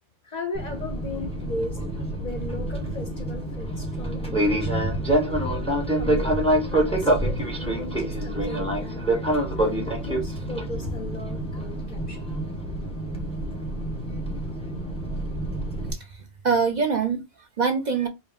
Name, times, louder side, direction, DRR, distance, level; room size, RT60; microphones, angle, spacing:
voice 1, 0.2-1.9 2.2-5.1 5.9-9.0 9.6-12.3, left 2 dB, 45° left, 0.6 m, -37 dB
Fixed-wing aircraft airplane, 0.5-15.9, right 1 dB, 5° left, 0.8 m, -27 dB
voice 2, 15.9-18.1, right 5 dB, 45° right, 0.7 m, -25 dB
4.8 x 2.2 x 3.5 m
omnidirectional pair, 1.2 m